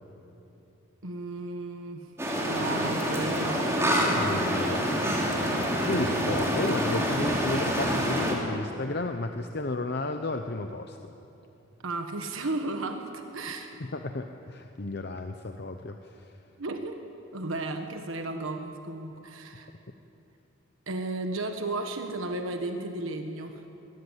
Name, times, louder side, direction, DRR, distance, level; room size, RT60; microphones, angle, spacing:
voice 1, 1.0-2.1 2.4-3.7 11.8-13.7 16.6-17.0 17.3-19.7 20.9-23.6, right 2 dB, 75° right, 5 dB, 1.4 m, -34 dB
sound 1, 2.2-8.3, equal, 15° right, 3.0 m, -27 dB
voice 2, 4.1-4.8 5.8-11.0 13.8-16.3, left 2 dB, 50° left, 6 dB, 0.8 m, -33 dB
22.0 x 18.5 x 8.1 m, 2.9 s
head